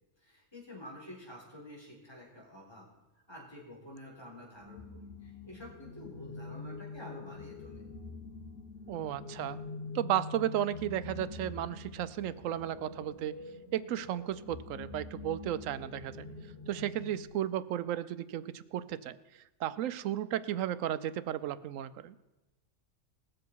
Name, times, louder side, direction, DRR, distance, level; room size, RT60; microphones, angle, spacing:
voice 1, 0.2-2.9 3.3-7.8, left 1 dB, 20° left, -5 dB, 4.0 m, -49 dB
sound 1, 4.6-17.3, left 3 dB, 50° left, 1.4 m, -45 dB
voice 2, 8.9-9.6 9.9-13.3 13.7-16.3 16.7-19.2 19.6-22.1, right 11 dB, 85° right, 15 dB, 1.0 m, -34 dB
19.5 x 7.5 x 4.6 m, 1.1 s
omnidirectional pair, 1.3 m